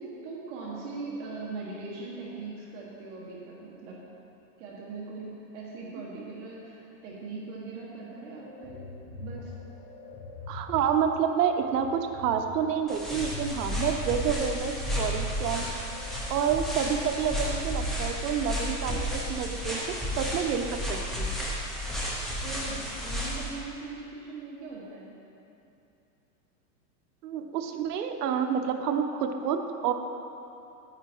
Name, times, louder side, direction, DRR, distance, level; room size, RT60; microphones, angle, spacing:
voice 1, 0.0-4.0 4.6-8.8 9.2-9.5 22.4-25.1, right 3 dB, 45° right, -4 dB, 1.7 m, -40 dB
sound 1, 8.3-16.9, left 3 dB, 25° left, 1.5 m, -43 dB
voice 2, 10.5-15.7 16.3-21.3 27.2-29.9, right 7 dB, 75° right, 5 dB, 1.0 m, -29 dB
sound 2, 12.9-23.5, equal, ahead, 0.6 m, -32 dB
9.8 x 8.7 x 4.6 m, 2.8 s
supercardioid pair, 170°, 48 cm